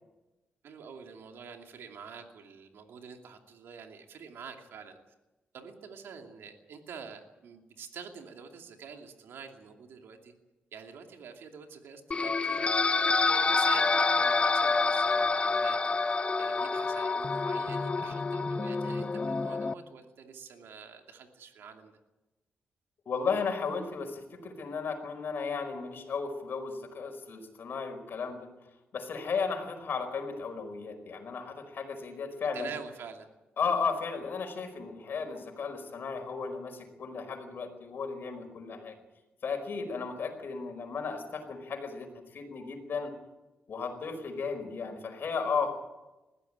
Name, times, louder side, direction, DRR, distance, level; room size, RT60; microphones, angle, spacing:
voice 1, 0.6-5.0 5.5-10.3 10.7-12.6 13.2-21.9 32.5-33.3, right 6 dB, 85° right, 4 dB, 2.6 m, -47 dB
sound 1, 12.1-19.7, left 4 dB, 30° left, 0.9 m, -27 dB
voice 2, 23.0-28.5 28.9-32.7 33.6-38.9 39.4-43.1 43.7-45.7, left 5 dB, 65° left, 6 dB, 4.9 m, -34 dB
21.0 x 15.5 x 8.9 m, 1.1 s
cardioid pair, 95°, 4 cm